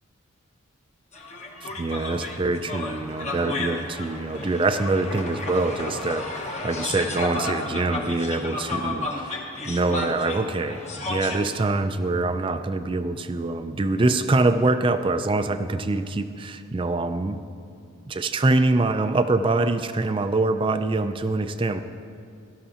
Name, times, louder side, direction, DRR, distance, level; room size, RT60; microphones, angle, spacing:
sound 1, 1.1-11.5, left 2 dB, 30° left, 0.9 m, -33 dB
voice 1, 1.8-17.4 18.1-21.8, right 2 dB, 25° right, 9 dB, 0.4 m, -24 dB
17.5 x 12.5 x 2.8 m, 2.4 s
head